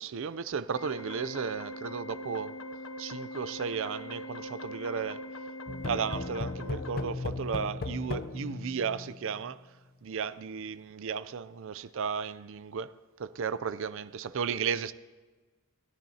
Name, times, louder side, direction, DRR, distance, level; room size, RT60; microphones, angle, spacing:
voice 1, 0.0-2.5 3.0-5.2 5.8-9.6 10.0-12.9 13.2-14.9, right 6 dB, 65° right, 0.4 m, -34 dB
sound 1, 0.8-7.1, left 2 dB, 65° left, 1.0 m, -44 dB
Organ, 0.8-6.8, right 1 dB, 20° left, 1.1 m, -45 dB
sound 2, 5.7-9.4, left 3 dB, 45° left, 0.6 m, -36 dB
28.5 x 10.5 x 2.8 m
head